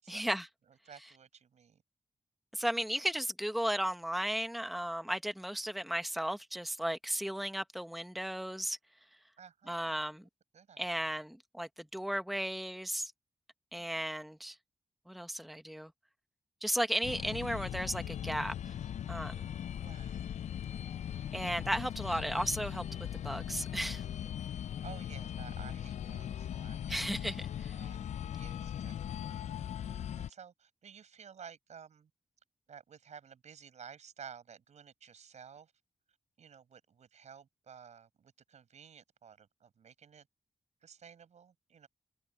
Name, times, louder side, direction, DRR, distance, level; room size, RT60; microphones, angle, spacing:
voice 1, 0.1-0.5 2.5-8.8 9.7-10.2 10.8-13.1 13.7-14.6 15.1-15.9 16.6-18.5 19.1-19.5 21.3-22.8 23.2-24.0 26.9-27.7, equal, ahead, 1.2 m, -35 dB
voice 2, 0.7-1.8 9.4-10.0 10.5-11.1 13.8-14.1 19.8-20.3 24.7-28.0 28.3-29.4 29.7-32.1 32.7-35.7 36.4-40.3 40.8-41.9, right 7 dB, 85° right, 5.6 m, -54 dB
sound 1, 17.0-30.3, left 9 dB, 85° left, 0.4 m, -39 dB
wide cardioid pair, 130°, 12 cm